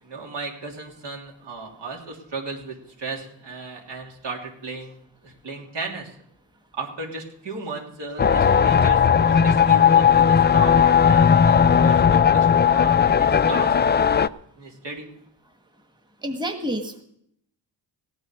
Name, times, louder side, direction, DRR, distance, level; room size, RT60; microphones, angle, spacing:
voice 1, 0.0-4.9 5.2-6.2 6.7-13.8 14.6-15.1, right 3 dB, 65° right, 1 dB, 3.1 m, -35 dB
sound 1, 8.2-14.3, left 7 dB, 25° left, 0.4 m, -17 dB
voice 2, 16.2-17.0, equal, 10° right, 6 dB, 1.7 m, -28 dB
16.0 x 8.9 x 6.5 m, 0.71 s
cardioid pair, 55°, 45 cm